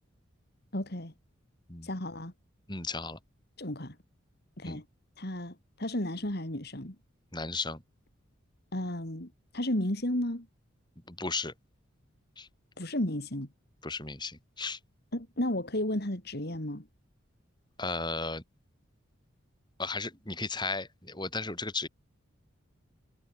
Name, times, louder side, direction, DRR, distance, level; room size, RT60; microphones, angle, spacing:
voice 1, 0.7-1.1 1.8-2.3 3.6-3.9 4.6-4.8 5.2-6.9 8.7-10.5 12.8-13.5 15.1-16.9, left 1 dB, 50° left, 3.3 m, -33 dB
voice 2, 2.7-3.2 4.6-4.8 7.3-7.8 11.1-11.5 12.4-12.5 13.8-14.8 17.8-18.4 19.8-21.9, left 3 dB, 20° left, 6.0 m, -35 dB
head